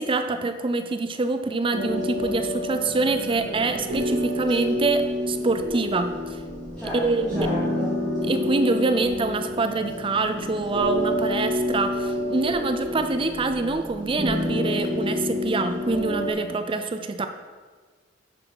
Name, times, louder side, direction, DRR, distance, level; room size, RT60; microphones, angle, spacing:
voice 1, 0.0-6.4 6.9-7.5 7.8-17.3, right 3 dB, 30° right, 8 dB, 0.4 m, -25 dB
sound 1, 1.7-16.3, left 1 dB, 45° right, 2.7 m, -28 dB
voice 2, 6.7-7.9, left 1 dB, 5° left, -12 dB, 2.4 m, -32 dB
9.9 x 6.5 x 4.7 m, 1.4 s
head